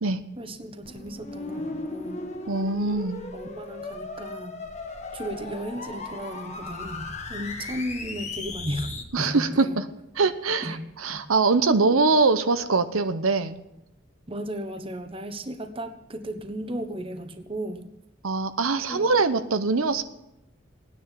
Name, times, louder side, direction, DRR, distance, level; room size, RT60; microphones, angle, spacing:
voice 1, 0.4-2.3 3.3-4.6 5.1-9.7 10.6-10.8 11.1-11.2 14.3-17.9 18.9-19.2, right 1 dB, 25° right, 7 dB, 1.1 m, -35 dB
sound 1, 0.8-9.0, left 3 dB, 35° left, 1.4 m, -36 dB
voice 2, 2.5-3.2 9.1-9.9 10.1-13.6 18.2-20.0, right 3 dB, 85° right, 10 dB, 0.9 m, -23 dB
17.5 x 10.0 x 7.5 m, 0.89 s
head